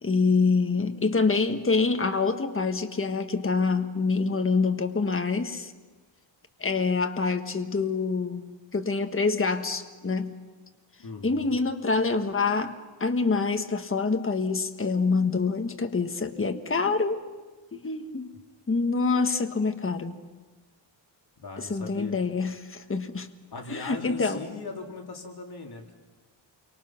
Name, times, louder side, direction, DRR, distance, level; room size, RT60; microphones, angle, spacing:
voice 1, 0.0-5.7 6.6-10.3 11.2-17.2 17.7-18.3 18.7-20.2 21.6-23.3 23.7-24.4, left 4 dB, 25° left, 6 dB, 1.5 m, -26 dB
voice 2, 11.0-11.5 21.4-22.1 23.5-25.9, left 3 dB, 50° left, 1 dB, 3.4 m, -39 dB
28.5 x 24.5 x 5.9 m, 1.3 s
wide cardioid pair, 135°, 48 cm